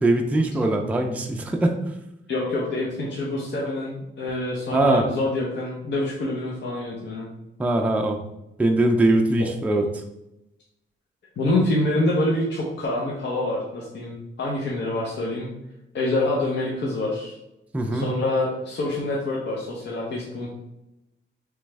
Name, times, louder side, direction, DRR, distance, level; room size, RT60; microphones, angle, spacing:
voice 1, 0.0-1.8 4.7-5.1 7.6-8.2 8.6-9.8 17.7-18.1, right 2 dB, 5° right, 3 dB, 0.3 m, -21 dB
voice 2, 2.3-7.3 11.4-15.5 15.9-17.4 17.9-20.5, left 2 dB, 60° left, -4 dB, 0.8 m, -26 dB
3.4 x 3.1 x 3.3 m, 0.88 s
cardioid pair, 120°, 21 cm